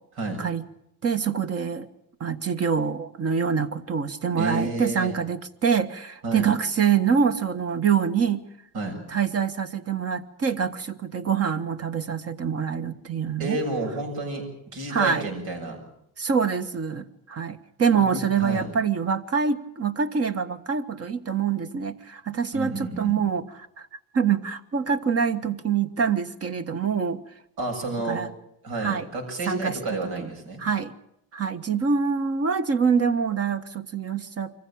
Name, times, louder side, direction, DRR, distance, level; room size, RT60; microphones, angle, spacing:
voice 1, 1.0-1.9 2.2-8.4 9.1-13.6 14.9-15.3 16.2-23.9 24.1-27.2 28.1-28.3 28.7-29.1 29.5-29.8 30.2-30.3 30.6-30.9 31.3-34.5, right 6 dB, 40° right, 9 dB, 1.5 m, -25 dB
voice 2, 4.4-5.1 6.2-6.5 8.7-9.0 13.4-14.4 14.7-15.8 18.1-18.7 22.5-23.2 27.6-28.2 28.6-30.6, right 2 dB, 80° right, 3 dB, 7.4 m, -30 dB
24.5 x 15.5 x 8.7 m, 0.78 s
cardioid pair, 110°, 37 cm